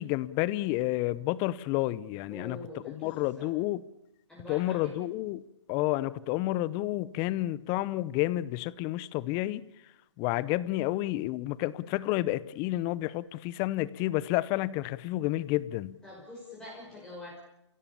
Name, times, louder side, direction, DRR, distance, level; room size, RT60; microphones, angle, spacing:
voice 1, 0.0-2.6 2.9-3.8 4.5-5.4 5.7-9.6 10.2-16.0, left 17 dB, 25° left, 0.8 m, -30 dB
voice 2, 2.3-3.5 4.3-5.0 16.0-17.4, left 2 dB, 5° left, 5.8 m, -45 dB
29.5 x 16.5 x 7.0 m
hypercardioid pair, 135°, 15 cm